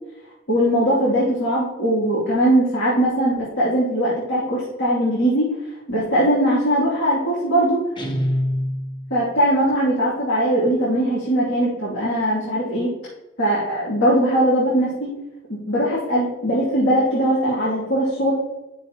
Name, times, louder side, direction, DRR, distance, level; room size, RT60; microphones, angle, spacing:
voice 1, 0.5-5.5 5.9-7.8 9.1-12.9 13.4-15.1 15.5-18.3, right 1 dB, 60° left, -9 dB, 2.8 m, -20 dB
Guitar, 8.0-9.2, equal, 25° left, 1.0 m, -25 dB
9.7 x 6.9 x 3.0 m, 1.0 s
head